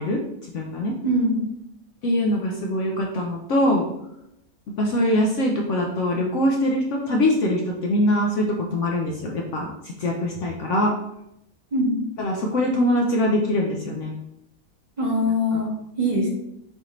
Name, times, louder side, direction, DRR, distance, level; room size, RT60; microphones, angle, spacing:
voice 1, 0.0-0.9 2.0-3.9 4.8-10.9 12.2-14.1 15.5-15.6, left 1 dB, 65° left, 0 dB, 0.8 m, -23 dB
voice 2, 1.0-1.4 11.7-12.0 15.0-16.3, equal, 30° right, -4 dB, 1.1 m, -22 dB
5.7 x 2.6 x 3.0 m, 0.82 s
omnidirectional pair, 1.6 m